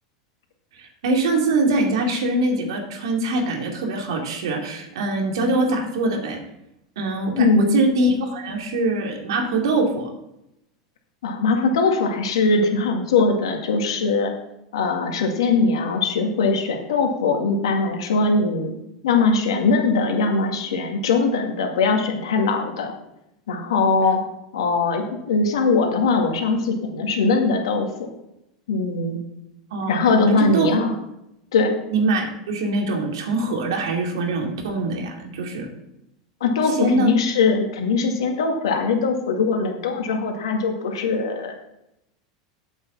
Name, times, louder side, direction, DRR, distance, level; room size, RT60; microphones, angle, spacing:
voice 1, 0.8-6.4 7.0-10.1 29.7-30.7 31.9-35.7 36.8-37.1, right 2 dB, 75° right, 2 dB, 2.5 m, -23 dB
voice 2, 7.3-7.9 11.2-14.3 14.7-18.7 19.0-22.9 23.5-24.2 24.5-27.9 28.7-29.2 29.9-30.9 31.5-31.8 36.4-41.5, left 4 dB, 80° left, 3 dB, 2.1 m, -21 dB
8.5 x 6.4 x 7.4 m, 0.86 s
hypercardioid pair, 95°, 3 cm